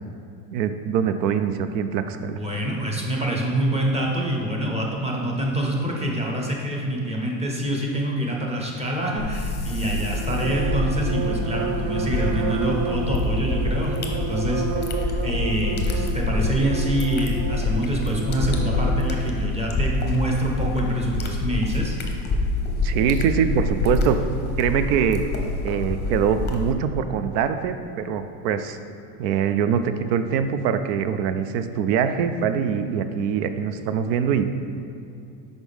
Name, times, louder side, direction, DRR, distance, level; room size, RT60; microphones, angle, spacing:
voice 1, 0.5-2.4 22.8-24.2 24.6-25.3 25.6-28.8 29.2-34.4, right 7 dB, 85° right, 10 dB, 0.5 m, -23 dB
voice 2, 2.3-14.9 15.2-22.0, right 1 dB, 15° right, -1 dB, 1.0 m, -26 dB
sound 1, 9.2-26.7, left 2 dB, 20° left, 0.7 m, -27 dB
sound 2, 9.8-19.4, right 5 dB, 40° right, 0.6 m, -31 dB
6.2 x 5.1 x 3.5 m, 2.6 s
supercardioid pair, 115°, 47 cm